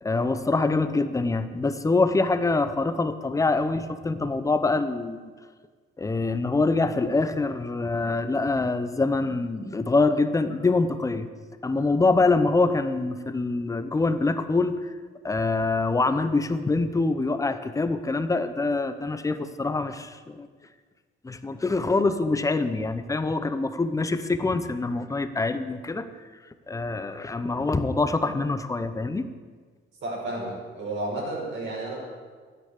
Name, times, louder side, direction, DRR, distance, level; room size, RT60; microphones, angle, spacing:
voice 1, 0.0-5.3 6.0-11.3 11.6-14.9 15.2-20.5 21.2-26.1 26.7-29.3, left 3 dB, 15° left, 11 dB, 0.7 m, -25 dB
voice 2, 30.0-32.0, right 2 dB, 60° right, -4 dB, 5.9 m, -32 dB
13.5 x 9.5 x 8.3 m, 1.5 s
cardioid pair, 150°, 21 cm